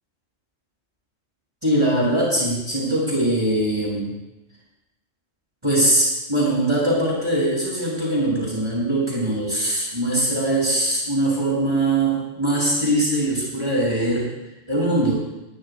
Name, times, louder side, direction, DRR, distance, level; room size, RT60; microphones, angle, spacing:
voice 1, 1.6-4.1 5.6-14.3 14.7-15.2, right 1 dB, 20° right, -5 dB, 5.5 m, -21 dB
20.5 x 20.0 x 2.2 m, 0.97 s
omnidirectional pair, 1.4 m